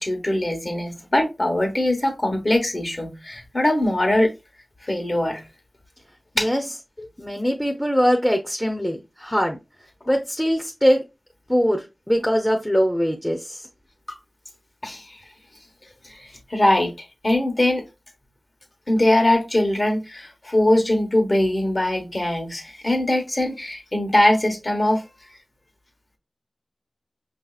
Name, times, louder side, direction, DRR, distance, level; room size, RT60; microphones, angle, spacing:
voice 1, 0.0-4.3 4.8-5.4 6.4-6.5 14.1-14.2 14.8-15.2 16.0-17.8 18.9-25.0, left 1 dB, 45° left, 3 dB, 1.1 m, -22 dB
voice 2, 7.2-9.6 10.1-11.0 11.5-13.7, equal, 5° left, 4 dB, 0.6 m, -22 dB
5.4 x 2.7 x 2.3 m, 0.25 s
wide cardioid pair, 45°, 0 cm